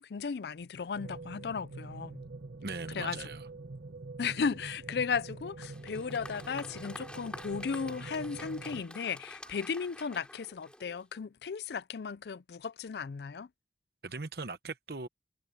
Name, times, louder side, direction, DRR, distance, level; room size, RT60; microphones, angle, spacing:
voice 1, 0.0-2.3 2.9-3.3 4.2-13.5, left 5 dB, 70° left, 0.4 m, -35 dB
sound 1, 0.9-8.8, right 3 dB, 80° right, 1.1 m, -45 dB
voice 2, 2.6-3.4 14.0-15.1, right 3 dB, 60° right, 1.0 m, -39 dB
Applause, 5.6-11.2, left 1 dB, 5° left, 3.8 m, -48 dB
head